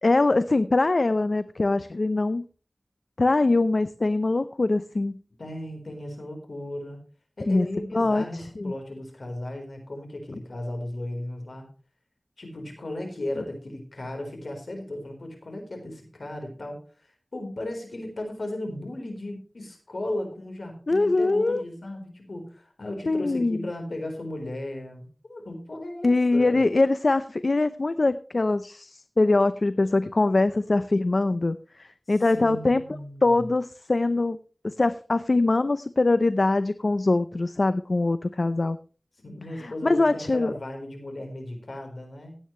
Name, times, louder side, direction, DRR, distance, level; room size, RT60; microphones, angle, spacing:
voice 1, 0.0-2.4 3.2-5.1 7.5-7.7 7.9-8.7 20.9-21.6 23.1-23.6 26.0-32.8 33.2-34.4 34.6-38.8 39.8-40.5, left 2 dB, 65° left, 13 dB, 0.6 m, -23 dB
voice 2, 5.4-7.0 7.4-11.7 12.4-16.8 17.3-26.6 32.1-33.5 39.2-42.4, left 1 dB, 80° left, 3 dB, 4.2 m, -36 dB
16.0 x 9.2 x 3.2 m, 0.38 s
wide cardioid pair, 45°, 0 cm